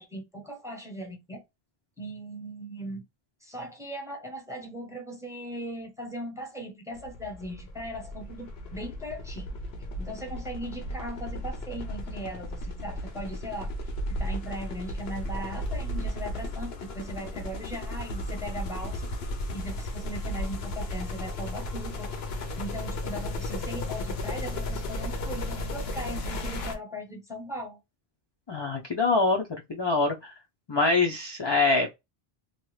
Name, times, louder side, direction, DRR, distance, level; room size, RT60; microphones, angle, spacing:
voice 1, 0.0-1.4 2.0-3.0 3.4-9.6 10.0-13.8 14.1-19.1 19.5-22.1 22.6-27.8, equal, 5° right, 0.7 m, -38 dB
sound 1, 7.0-26.7, left 1 dB, 80° left, 0.9 m, -34 dB
voice 2, 28.5-30.3 30.7-31.9, left 3 dB, 40° left, 0.4 m, -25 dB
2.8 x 2.3 x 3.1 m
omnidirectional pair, 1.0 m